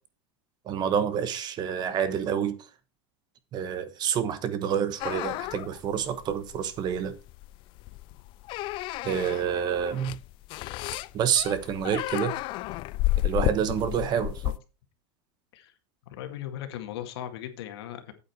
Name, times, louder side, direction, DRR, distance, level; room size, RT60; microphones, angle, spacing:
voice 1, 0.7-2.6 3.5-7.2 9.0-10.2 11.1-12.4 13.2-14.6, right 8 dB, 35° right, 1.2 m, -28 dB
sound 1, 5.0-14.6, left 17 dB, 40° left, 0.4 m, -32 dB
voice 2, 16.1-18.1, left 11 dB, 75° left, 2.0 m, -38 dB
8.6 x 8.6 x 4.5 m
supercardioid pair, 145°, 13 cm